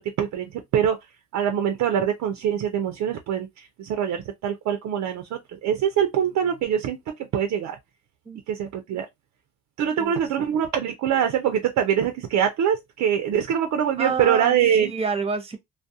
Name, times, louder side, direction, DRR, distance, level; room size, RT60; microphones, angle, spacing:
voice 1, 0.2-1.0 1.3-3.5 3.8-7.0 7.3-7.8 8.5-9.1 9.8-14.9, right 9 dB, 70° right, 0.5 m, -23 dB
voice 2, 10.0-10.5 14.0-15.6, right 5 dB, 20° right, 0.7 m, -29 dB
2.4 x 2.1 x 2.6 m
cardioid pair, 90°, 30 cm